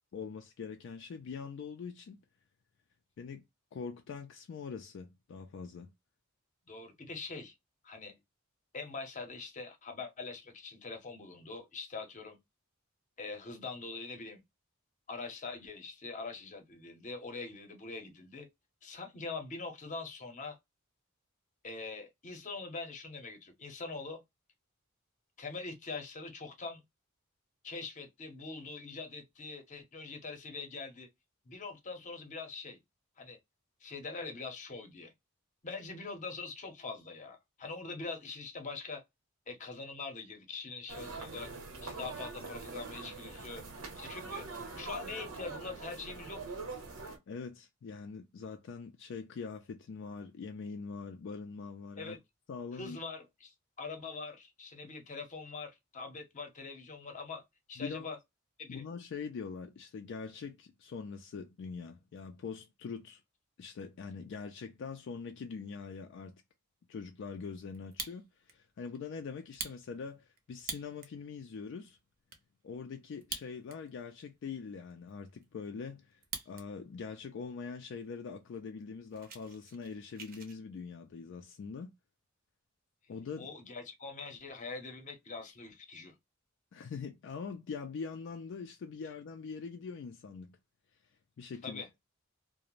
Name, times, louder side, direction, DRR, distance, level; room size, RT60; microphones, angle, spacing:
voice 1, 0.1-2.2 3.2-3.4 3.7-5.9 47.3-52.2 52.5-53.0 57.8-58.1 58.7-63.2 63.6-66.4 66.9-72.0 72.6-76.2 76.5-81.9 83.1-83.5 86.7-90.6 91.4-91.8, left 5 dB, 60° left, 0.3 m, -43 dB
voice 2, 6.7-7.5 7.8-8.2 8.7-12.4 13.2-14.4 15.1-18.5 18.8-20.6 21.6-24.2 25.4-26.8 27.6-31.1 31.5-32.8 33.2-33.4 33.8-35.1 35.6-39.0 39.5-41.5 41.8-43.6 44.0-44.4 44.7-46.4 52.0-52.2 52.7-57.4 57.7-58.2 58.6-58.8 83.4-86.1 91.6-91.9, left 4 dB, 35° left, 0.7 m, -43 dB
sound 1, 40.9-47.2, right 3 dB, 90° right, 0.9 m, -43 dB
Fire, 67.7-68.5 68.9-69.0 69.5-71.2 71.7-71.8 72.0-72.4 73.1-74.0 74.3-74.4 74.9-76.7 77.0-77.4 78.0-78.1 78.3-78.5 78.8-80.6, right 5 dB, 45° right, 0.6 m, -44 dB
2.4 x 2.0 x 3.0 m
head